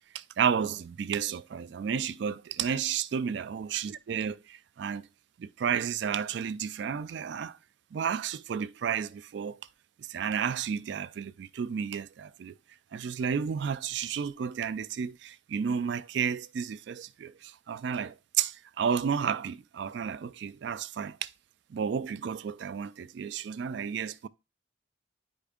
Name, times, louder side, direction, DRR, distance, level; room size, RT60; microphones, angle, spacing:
voice 1, 0.1-5.1 5.4-7.6 7.9-9.6 10.0-12.5 12.9-21.3 21.7-24.3, right 7 dB, 60° right, 0.3 m, -32 dB
9.9 x 5.1 x 2.4 m
head